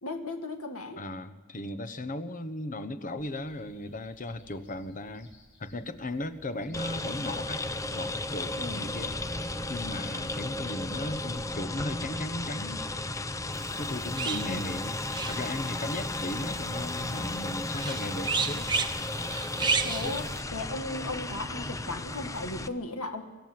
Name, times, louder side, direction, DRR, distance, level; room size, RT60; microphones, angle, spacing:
voice 1, 0.0-1.0 8.6-8.9 14.3-14.8 19.8-23.2, left 2 dB, 80° left, 4 dB, 2.1 m, -36 dB
voice 2, 1.0-5.3 5.6-7.6 7.9-9.1 9.7-12.8 13.8-15.0 15.3-18.7 20.0-20.2, left 1 dB, 40° left, 11 dB, 1.1 m, -36 dB
sound 1, 3.2-21.4, right 1 dB, 60° left, 5.7 m, -54 dB
sound 2, 6.7-22.7, left 2 dB, 15° left, 0.6 m, -34 dB
sound 3, 13.5-20.4, right 4 dB, 20° right, 1.1 m, -34 dB
25.5 x 14.5 x 7.8 m, 1.3 s
head